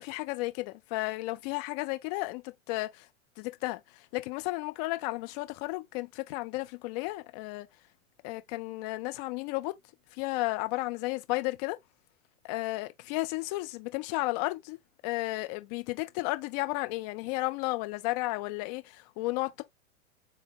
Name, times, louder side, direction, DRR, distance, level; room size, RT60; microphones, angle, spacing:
voice 1, 0.0-3.1 3.4-7.7 8.2-9.8 10.1-11.8 12.4-14.8 15.0-19.6, left 21 dB, 30° left, 0.6 m, -33 dB
3.8 x 3.5 x 3.8 m
figure-of-eight pair, 105°, 43 cm